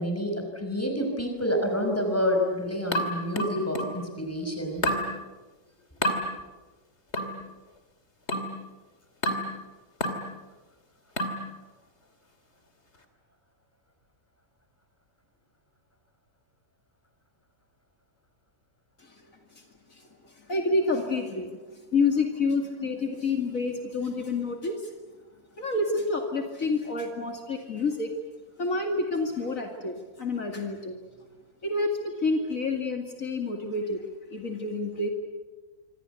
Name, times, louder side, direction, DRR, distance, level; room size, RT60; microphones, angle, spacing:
voice 1, 0.0-4.9, equal, 10° left, 4 dB, 5.5 m, -28 dB
sound 1, 2.9-4.0 4.8-5.1 6.0-6.2 7.1-7.4 8.3-8.6 9.2-9.5 10.0-10.3 11.2-11.5, left 1 dB, 45° left, 3.0 m, -28 dB
voice 2, 19.0-19.6 19.9-24.9 25.6-28.1 28.6-30.9 31.6-34.0 34.3-35.1, left 3 dB, 60° left, 3 dB, 2.7 m, -29 dB
26.0 x 26.0 x 8.3 m, 1.2 s
omnidirectional pair, 1.6 m